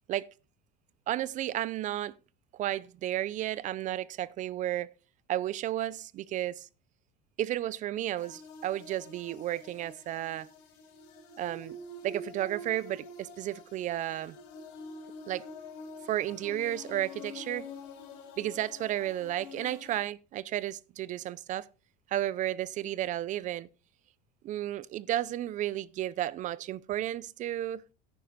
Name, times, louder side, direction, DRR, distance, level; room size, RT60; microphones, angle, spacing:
voice 1, 1.1-2.1 2.5-4.9 5.3-6.7 7.4-10.5 11.4-11.8 12.0-14.4 15.3-15.5 16.1-17.7 18.4-21.7 22.1-23.7 24.4-27.8, right 13 dB, 35° right, 0.4 m, -33 dB
sound 1, 8.2-20.0, left 2 dB, 75° left, 4.1 m, -47 dB
10.0 x 9.3 x 3.9 m
cardioid pair, 140°, 21 cm